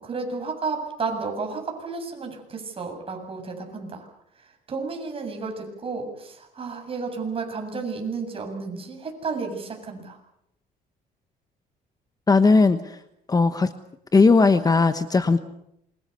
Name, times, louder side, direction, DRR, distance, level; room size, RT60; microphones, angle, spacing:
voice 1, 0.0-4.1 4.7-10.2, right 4 dB, 35° right, 3 dB, 7.8 m, -32 dB
voice 2, 12.3-13.0 13.3-13.7 14.1-15.4, left 4 dB, 20° left, 10 dB, 1.2 m, -18 dB
27.5 x 24.0 x 6.9 m, 0.79 s
cardioid pair, 110°, 17 cm